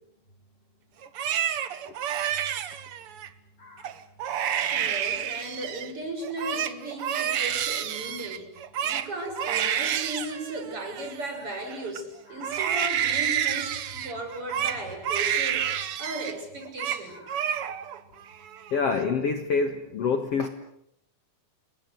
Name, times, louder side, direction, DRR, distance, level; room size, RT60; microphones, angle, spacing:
Crying sobbing, 1.0-3.3 3.8-5.9 6.2-12.0 12.4-16.4 16.6-17.0 17.3-18.0 18.3-19.0, right 9 dB, 65° right, 1.4 m, -29 dB
voice 1, 4.7-8.6 8.8-17.2, right 1 dB, 35° right, 3 dB, 7.3 m, -36 dB
voice 2, 18.7-20.5, left 5 dB, 55° left, 7 dB, 2.1 m, -27 dB
29.5 x 23.0 x 7.9 m, 0.73 s
omnidirectional pair, 4.2 m